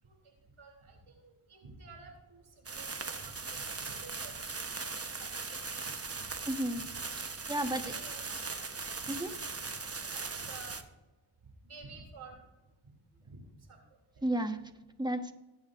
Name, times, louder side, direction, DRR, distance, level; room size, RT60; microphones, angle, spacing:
voice 1, 0.0-4.4 4.7-6.3 7.8-8.3 9.0-9.2 9.6-10.8 11.6-12.4 13.2-13.4 13.7-13.8, right 4 dB, 75° right, 1 dB, 3.2 m, -52 dB
sound 1, 2.7-10.8, right 4 dB, 30° right, 1.1 m, -39 dB
voice 2, 6.5-6.8 7.5-7.9 9.1-9.3 14.2-14.7 15.0-15.3, right 1 dB, 10° right, 7 dB, 1.4 m, -32 dB
20.5 x 8.4 x 2.6 m, 1.1 s
cardioid pair, 45°, 50 cm